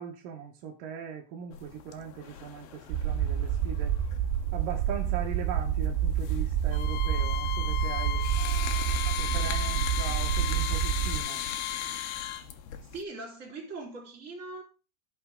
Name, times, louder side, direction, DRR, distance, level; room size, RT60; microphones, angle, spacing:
voice 1, 0.0-3.9 4.5-11.4, right 8 dB, 65° right, 2.3 m, -40 dB
sound 1, 1.5-13.0, left 9 dB, 70° left, 2.5 m, -40 dB
sound 2, 2.9-11.2, right 9 dB, 80° right, 2.9 m, -28 dB
Bowed string instrument, 6.7-12.5, left 15 dB, 90° left, 3.0 m, -36 dB
voice 2, 12.8-14.6, right 3 dB, 20° right, 3.6 m, -41 dB
16.0 x 5.6 x 3.7 m
omnidirectional pair, 5.1 m